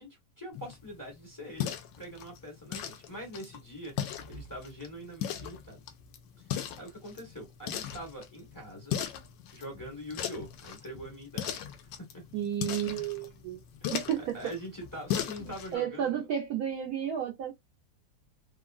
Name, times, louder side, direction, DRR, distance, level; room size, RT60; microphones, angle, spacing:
voice 1, 0.0-1.7 2.0-5.8 6.4-9.0 9.5-12.2 12.8-13.1 13.8-16.2, equal, 15° left, 1.0 m, -44 dB
sound 1, 0.5-15.8, left 10 dB, 80° left, 1.3 m, -39 dB
voice 2, 12.3-13.6 13.9-14.4 15.7-17.5, right 9 dB, 70° right, 0.9 m, -32 dB
3.6 x 2.1 x 2.3 m
omnidirectional pair, 2.0 m